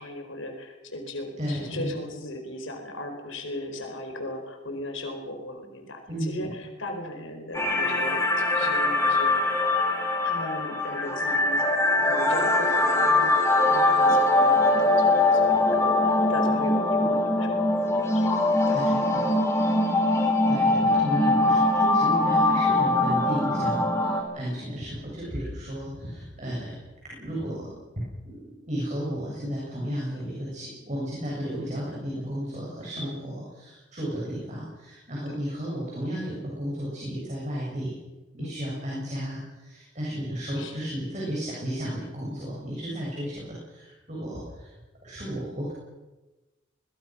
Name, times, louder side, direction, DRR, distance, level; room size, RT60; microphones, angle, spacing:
voice 1, 0.0-8.2 8.5-9.3 10.2-18.8 19.2-19.3 33.0-33.1 38.4-38.6 40.6-40.8, left 1 dB, 85° left, 4 dB, 4.6 m, -37 dB
voice 2, 1.4-1.9 6.1-6.5 18.6-19.3 20.1-26.8 27.1-27.7 28.2-37.9 38.3-44.7 45.0-45.7, equal, 35° right, -5 dB, 7.5 m, -33 dB
sound 1, 7.5-24.2, left 2 dB, 15° left, 3.4 m, -22 dB
23.5 x 21.5 x 6.3 m, 1.1 s
head